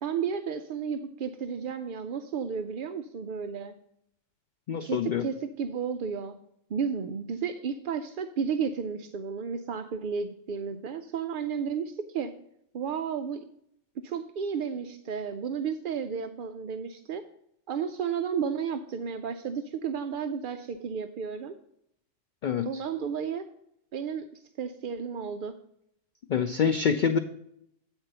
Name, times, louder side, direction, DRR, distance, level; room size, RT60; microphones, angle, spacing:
voice 1, 0.0-3.7 4.8-6.4 6.7-12.3 12.7-13.5 14.0-17.2 17.7-21.6 22.6-23.5 23.9-25.5, right 6 dB, 65° right, 8 dB, 0.5 m, -33 dB
voice 2, 4.7-5.2 22.4-22.8 26.3-27.2, left 6 dB, 65° left, 9 dB, 0.5 m, -26 dB
8.8 x 4.5 x 6.6 m, 0.74 s
omnidirectional pair, 1.3 m